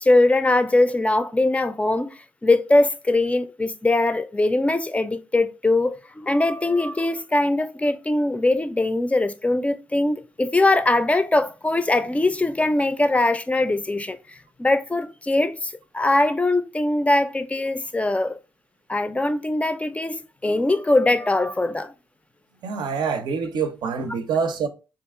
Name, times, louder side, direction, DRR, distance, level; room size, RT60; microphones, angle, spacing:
voice 1, 0.0-18.4 18.9-21.9, left 2 dB, 15° left, 0.4 m, -21 dB
voice 2, 22.6-24.7, right 6 dB, 70° right, 0.5 m, -25 dB
2.9 x 2.4 x 3.5 m
supercardioid pair, 50°, 8 cm